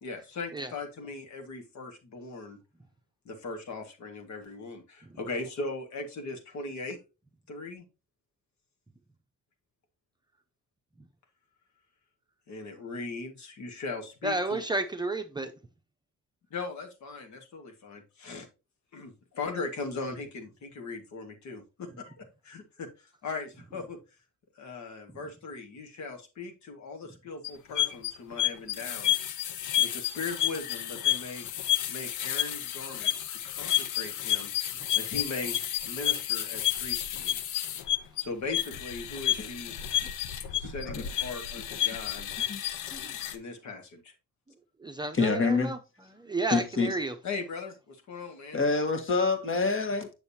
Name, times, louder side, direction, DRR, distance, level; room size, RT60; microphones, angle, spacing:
voice 1, 0.0-2.6 3.3-7.0 7.5-7.8 12.5-14.7 16.5-18.5 18.9-24.0 24.6-29.4 29.8-31.5 31.9-35.6 35.8-37.4 38.2-39.8 40.5-42.3 43.3-44.1 47.2-48.6, left 3 dB, 65° left, 1.7 m, -39 dB
voice 2, 14.2-15.5 44.8-45.8 46.1-47.1, right 2 dB, 15° right, 0.7 m, -31 dB
sound 1, 27.4-43.4, left 11 dB, 85° left, 0.7 m, -30 dB
voice 3, 40.6-41.1 42.5-42.6 42.9-43.2 45.1-45.7 46.5-47.0 48.5-50.1, left 4 dB, 45° left, 1.6 m, -27 dB
6.8 x 6.5 x 2.7 m
cardioid pair, 90°, 30 cm